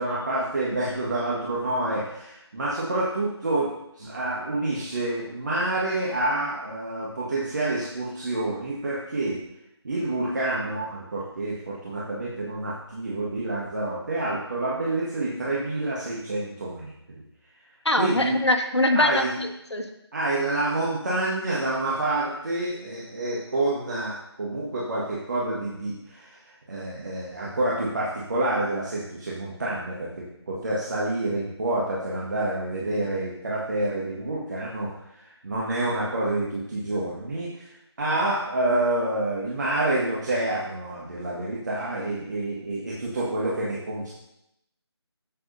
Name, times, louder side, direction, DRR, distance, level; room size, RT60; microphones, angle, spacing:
voice 1, 0.0-9.4 9.8-16.9 18.0-18.4 18.9-19.4 20.1-34.9 35.2-37.7 38.0-44.1, right 2 dB, 40° right, -6 dB, 1.6 m, -28 dB
voice 2, 17.8-19.9, left 1 dB, 75° left, 4 dB, 1.4 m, -23 dB
14.0 x 6.5 x 2.7 m, 0.82 s
figure-of-eight pair, 160°, 14 cm